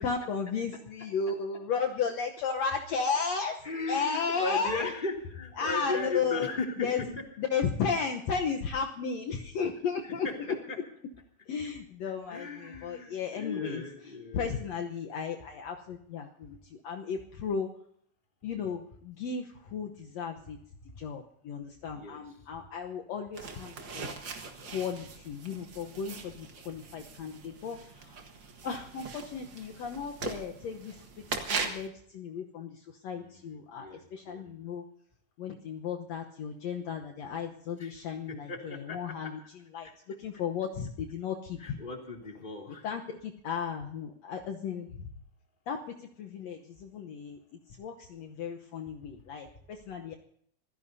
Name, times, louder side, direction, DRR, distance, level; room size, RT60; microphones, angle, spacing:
voice 1, 0.0-3.5 3.9-4.9 5.6-6.5 6.8-7.0 7.4-10.3 11.5-13.8 14.3-16.6 16.8-17.7 18.4-19.5 19.7-20.6 21.0-24.1 24.6-27.8 28.6-30.9 31.5-32.7 33.0-34.8 35.4-39.3 39.7-39.9 40.2-41.8 42.8-44.9 45.7-45.8 46.2-47.4 47.8-50.1, left 6 dB, 65° left, 3 dB, 2.0 m, -34 dB
voice 2, 0.7-1.4 3.3-7.3 10.0-10.8 12.1-14.6 21.9-22.2 33.1-34.4 37.8-39.3 39.8-39.9 41.6-42.9, left 3 dB, 15° left, 1 dB, 2.6 m, -38 dB
sound 1, 23.3-31.9, right 4 dB, 45° right, 2.0 m, -40 dB
25.5 x 16.5 x 2.7 m, 0.67 s
omnidirectional pair, 3.5 m